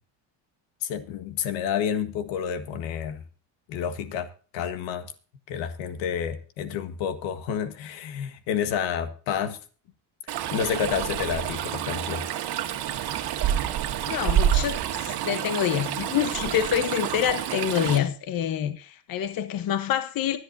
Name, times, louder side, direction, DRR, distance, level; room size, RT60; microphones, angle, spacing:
voice 1, 0.8-3.2 3.7-4.3 4.5-5.1 5.5-9.6 10.5-12.2, left 8 dB, 80° left, 1.7 m, -29 dB
Stream, 10.3-18.0, right 10 dB, 60° right, 1.7 m, -28 dB
voice 2, 14.1-20.4, left 9 dB, 50° left, 1.1 m, -26 dB
23.5 x 8.2 x 2.7 m
cardioid pair, 120°, 45 cm